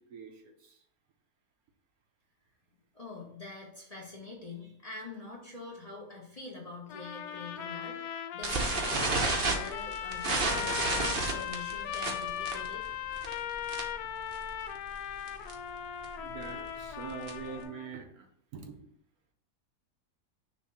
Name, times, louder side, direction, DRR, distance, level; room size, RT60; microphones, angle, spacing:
voice 1, 0.1-0.8 16.2-18.3 18.5-18.8, right 6 dB, 65° right, 4 dB, 1.2 m, -44 dB
voice 2, 2.9-12.8, left 3 dB, 25° left, -2 dB, 1.1 m, -45 dB
sound 1, 6.9-17.9, left 10 dB, 75° left, 1.1 m, -38 dB
sound 2, 8.4-14.1 14.3-14.6 14.9-15.0 15.3-15.5 16.0-17.6, right 3 dB, 40° right, 0.9 m, -31 dB
6.4 x 3.0 x 5.5 m, 0.69 s
omnidirectional pair, 1.8 m